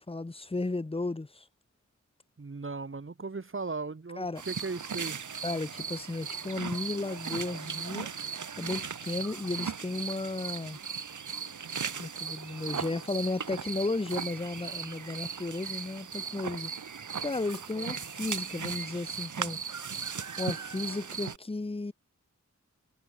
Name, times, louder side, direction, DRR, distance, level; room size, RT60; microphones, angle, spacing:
voice 1, 0.0-1.5 4.2-4.4 5.4-8.1 8.6-10.8 12.0-16.7 17.2-19.6 19.9-20.0 20.4-21.9, left 2 dB, 20° left, 0.8 m, -34 dB
voice 2, 2.4-5.2 17.7-18.0, right 3 dB, 40° right, 1.6 m, -37 dB
sound 1, 4.4-21.4, right 6 dB, 70° right, 1.1 m, -37 dB
wide cardioid pair, 65°, 31 cm